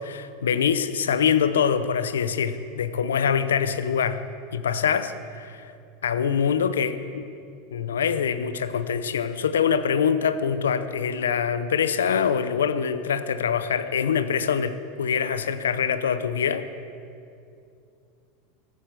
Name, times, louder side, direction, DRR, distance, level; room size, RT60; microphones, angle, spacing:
voice 1, 0.0-4.2 4.5-5.7 6.0-7.3 7.7-16.7, left 7 dB, 85° left, 12 dB, 0.7 m, -24 dB
13.5 x 8.8 x 6.8 m, 2.5 s
hypercardioid pair, 95°, 0 cm